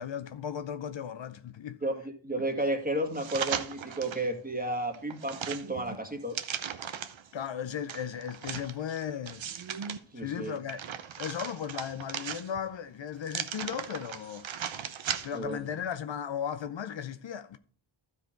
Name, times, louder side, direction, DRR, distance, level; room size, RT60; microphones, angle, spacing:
voice 1, 0.0-1.8 7.3-9.5 10.1-10.8 11.2-14.5 15.2-17.6, left 8 dB, 65° left, 0.7 m, -36 dB
voice 2, 1.8-6.4 10.1-10.6 15.3-15.6, right 1 dB, 15° right, 1.9 m, -32 dB
sound 1, 3.1-4.3 4.7-7.3 7.9-10.0 10.4-12.7 13.2-15.5 15.9-16.0, right 8 dB, 70° right, 0.8 m, -37 dB
12.5 x 4.9 x 4.5 m
wide cardioid pair, 65°, 49 cm